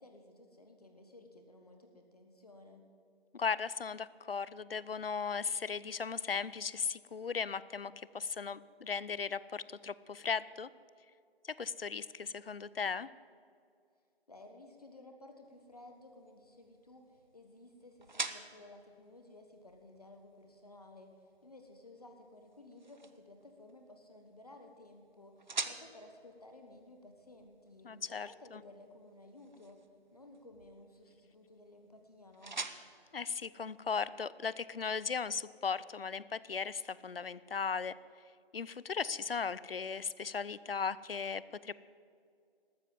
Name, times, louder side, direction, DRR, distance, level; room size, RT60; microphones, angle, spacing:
voice 1, 0.0-2.9 14.3-29.8 30.1-32.6, left 2 dB, 40° left, 4 dB, 1.3 m, -56 dB
voice 2, 3.3-10.7 11.4-13.1 27.8-28.6 33.1-38.0 38.5-41.7, left 5 dB, 65° left, 18 dB, 0.6 m, -37 dB
sound 1, 15.4-34.3, right 3 dB, 45° right, 0.9 m, -48 dB
13.5 x 13.0 x 7.5 m, 2.3 s
figure-of-eight pair, 170°, 31 cm